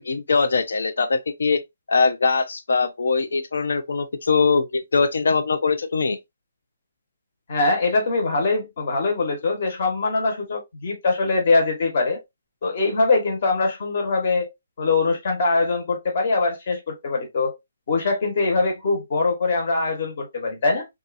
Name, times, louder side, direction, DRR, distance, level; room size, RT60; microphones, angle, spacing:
voice 1, 0.0-1.6 1.9-6.2, left 4 dB, 85° left, 0.4 m, -22 dB
voice 2, 7.5-12.2 12.6-14.5 14.8-17.5 17.9-20.9, left 3 dB, 50° left, 1.1 m, -22 dB
2.6 x 2.4 x 2.4 m
hypercardioid pair, 160°, 0 cm